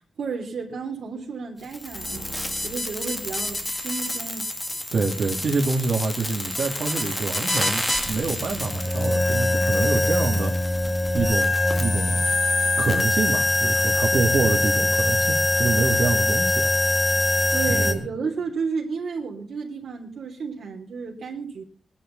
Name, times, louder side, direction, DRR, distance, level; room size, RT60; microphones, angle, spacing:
voice 1, 0.2-2.3 2.6-4.5 17.5-21.6, right 5 dB, 75° right, 0 dB, 3.3 m, -32 dB
sound 1, 1.6-17.9, left 2 dB, 15° left, 1.9 m, -24 dB
voice 2, 4.9-10.8 11.1-12.2 12.8-16.7 17.7-18.0, right 3 dB, 55° right, -1 dB, 2.3 m, -26 dB
22.0 x 11.0 x 4.0 m, 0.40 s
wide cardioid pair, 125°, 0 cm